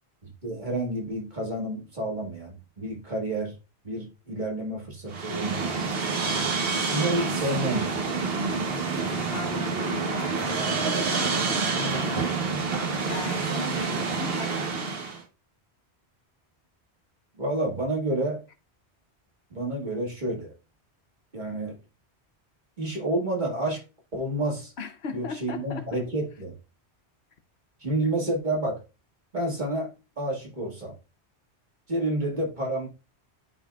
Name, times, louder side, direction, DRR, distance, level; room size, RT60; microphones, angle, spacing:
voice 1, 0.4-3.5 3.8-5.8 6.9-8.0 17.3-18.4 19.5-20.5 21.3-21.8 22.8-23.8 24.1-24.7 25.1-26.5 27.8-28.8 29.3-29.9 30.2-30.9 31.9-32.9, right 1 dB, 45° right, 2.0 m, -29 dB
sound 1, 5.1-15.2, right 4 dB, 65° right, 1.2 m, -28 dB
voice 2, 9.3-12.3 12.6-14.9 24.8-26.0, left 5 dB, 75° left, 1.1 m, -38 dB
11.5 x 4.0 x 2.3 m
omnidirectional pair, 1.1 m